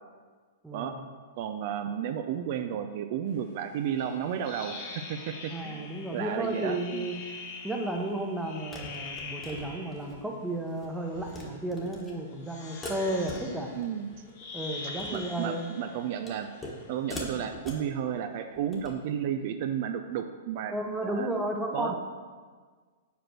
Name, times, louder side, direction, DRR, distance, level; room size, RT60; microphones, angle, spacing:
voice 1, 1.4-4.8 5.1-7.1 13.8-14.1 14.8-16.5 16.9-21.3 21.7-21.9, right 9 dB, 50° right, 7 dB, 0.4 m, -33 dB
sound 1, 4.0-10.2 11.0-11.6 12.3-17.7, left 3 dB, 45° left, 1.5 m, -44 dB
voice 2, 5.5-7.2 7.6-13.7 14.5-15.6 20.7-22.0, right 1 dB, 5° right, 1 dB, 0.8 m, -33 dB
sound 2, 7.9-8.0 8.7-10.2 10.6-10.9 11.1-11.4 11.7-12.1 12.8-13.9 14.1-14.5 14.9-15.3 16.3-16.8 17.1-17.9 18.5-19.0, left 1 dB, 15° left, 1.3 m, -42 dB
5.1 x 4.4 x 6.2 m, 1.5 s
hypercardioid pair, 130°, 0 cm